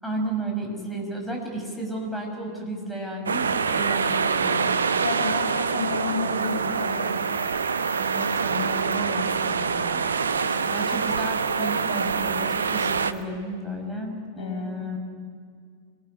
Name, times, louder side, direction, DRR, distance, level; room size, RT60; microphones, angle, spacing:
voice 1, 0.0-4.7 7.9-15.0, right 1 dB, ahead, 1 dB, 5.9 m, -33 dB
sound 1, 3.3-13.1, right 5 dB, 70° right, 0.9 m, -25 dB
voice 2, 5.0-7.2 10.4-10.8 14.4-14.7, left 4 dB, 55° left, 1 dB, 3.2 m, -32 dB
sound 2, 6.4-9.0 9.3-9.5 10.1-13.2, right 10 dB, 40° right, 2.6 m, -48 dB
26.0 x 19.5 x 10.0 m, 2.1 s
figure-of-eight pair, 90°, 0 cm